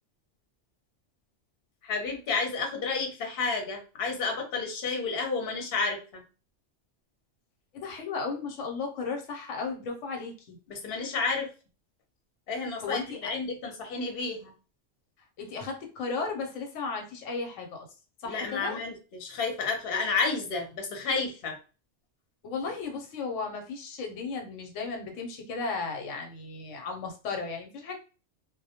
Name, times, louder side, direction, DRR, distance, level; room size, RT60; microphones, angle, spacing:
voice 1, 1.8-6.2 10.7-11.5 12.5-14.5 18.3-21.6, left 4 dB, 55° left, 2 dB, 0.8 m, -31 dB
voice 2, 7.7-10.6 12.8-13.3 15.4-17.9 18.2-18.8 22.4-27.9, left 4 dB, 90° left, 2 dB, 1.0 m, -35 dB
2.2 x 2.1 x 2.7 m, 0.34 s
omnidirectional pair, 1.2 m